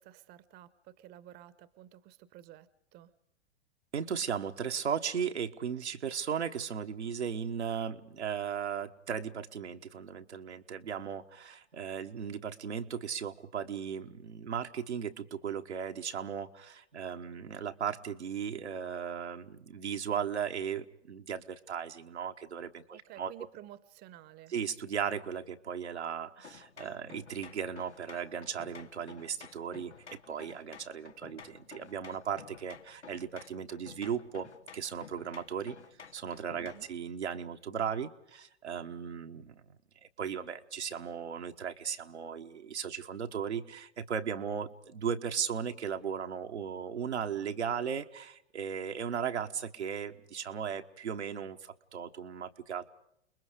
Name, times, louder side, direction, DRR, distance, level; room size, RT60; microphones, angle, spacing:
voice 1, 0.0-3.1 22.9-24.5 36.6-36.9, right 13 dB, 30° right, 17 dB, 1.0 m, -52 dB
voice 2, 3.9-23.3 24.5-29.9 30.3-35.8 36.1-39.8 40.2-52.9, right 7 dB, 80° right, 5 dB, 1.3 m, -36 dB
sound 1, 26.4-37.0, left 6 dB, 85° left, 1.0 m, -52 dB
29.5 x 21.0 x 5.0 m, 0.77 s
figure-of-eight pair, 105°, 33 cm